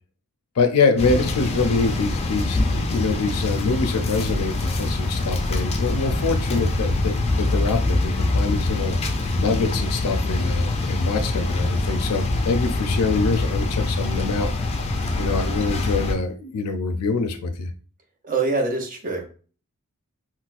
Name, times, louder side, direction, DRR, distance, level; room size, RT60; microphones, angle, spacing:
voice 1, 0.6-9.0 9.4-14.5 15.2-17.7, left 4 dB, 90° left, 8 dB, 0.4 m, -24 dB
sound 1, 1.0-16.1, left 2 dB, 30° left, 0.4 m, -24 dB
voice 2, 18.2-19.2, right 3 dB, 40° right, 4 dB, 0.6 m, -24 dB
4.0 x 2.1 x 2.4 m, 0.38 s
head